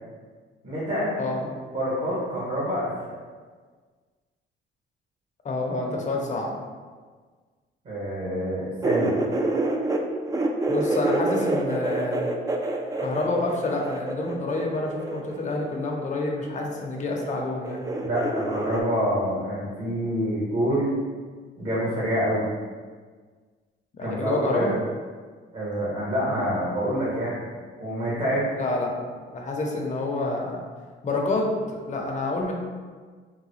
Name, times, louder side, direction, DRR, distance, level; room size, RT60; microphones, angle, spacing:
voice 1, 0.6-1.2 1.7-2.9 7.8-9.2 18.0-20.9 21.6-22.5 24.0-24.8 25.5-27.4 27.8-28.5, equal, 55° right, -8 dB, 1.2 m, -26 dB
voice 2, 1.2-1.6 5.4-6.5 9.2-9.4 10.7-12.3 13.0-17.9 24.0-24.7 28.6-28.9 29.3-30.6 31.0-32.5, left 2 dB, 35° left, 0 dB, 0.7 m, -28 dB
sound 1, 8.8-10.0 10.2-15.8 16.8-17.4 17.6-18.8, right 2 dB, 20° right, 0.3 m, -27 dB
3.8 x 2.2 x 3.1 m, 1.5 s
cardioid pair, 90°, 20 cm